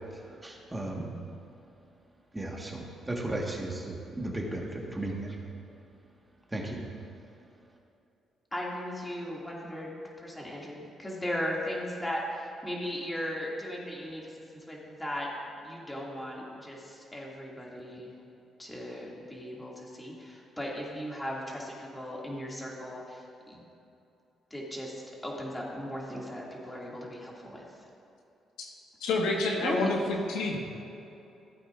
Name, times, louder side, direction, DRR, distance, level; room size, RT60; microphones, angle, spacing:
voice 1, 0.1-1.1 2.3-5.4 6.5-6.8, right 1 dB, 15° right, -1 dB, 1.5 m, -35 dB
voice 2, 8.5-15.3 15.6-18.1 18.6-23.7 24.5-27.9 29.6-29.9, equal, 10° left, -4 dB, 2.3 m, -37 dB
voice 3, 29.0-30.6, left 2 dB, 90° left, 0 dB, 1.4 m, -28 dB
16.0 x 8.4 x 2.5 m, 2.8 s
cardioid pair, 90°, 0 cm